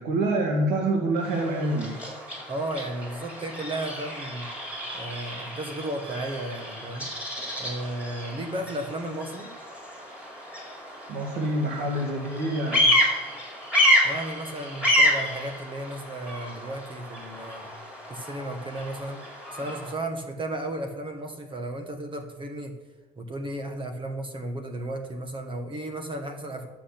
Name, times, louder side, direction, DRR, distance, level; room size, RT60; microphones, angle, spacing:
voice 1, 0.0-1.9 11.1-12.9, right 1 dB, 80° right, 0 dB, 1.9 m, -26 dB
Bird vocalization bird call bird song, 1.2-19.9, left 1 dB, 5° right, 5.4 m, -29 dB
voice 2, 2.5-4.5 4.9-7.1 7.6-9.5 14.0-17.7 18.1-19.2 19.5-22.8 23.2-26.7, right 1 dB, 30° right, 5 dB, 1.6 m, -34 dB
12.5 x 6.0 x 8.6 m, 1.2 s
cardioid pair, 110°, 17 cm